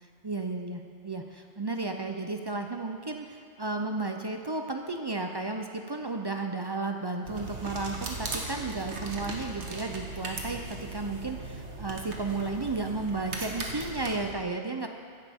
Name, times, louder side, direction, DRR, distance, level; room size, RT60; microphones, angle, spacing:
voice 1, 0.2-14.9, right 3 dB, 35° right, 4 dB, 0.4 m, -33 dB
sound 1, 7.2-14.3, right 3 dB, 70° right, 1.5 m, -38 dB
15.0 x 10.0 x 3.6 m, 2.1 s
omnidirectional pair, 1.2 m